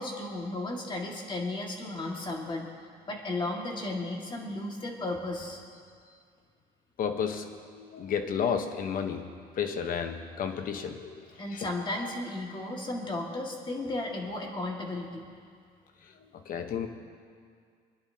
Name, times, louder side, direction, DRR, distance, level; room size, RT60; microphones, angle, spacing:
voice 1, 0.0-2.7 3.1-5.6 11.4-15.2, left 2 dB, 30° left, 0 dB, 2.0 m, -34 dB
voice 2, 7.0-11.2 11.5-11.7 16.5-16.9, left 7 dB, 55° left, 7 dB, 1.1 m, -32 dB
26.0 x 10.5 x 2.9 m, 2.1 s
cardioid pair, 110°, 17 cm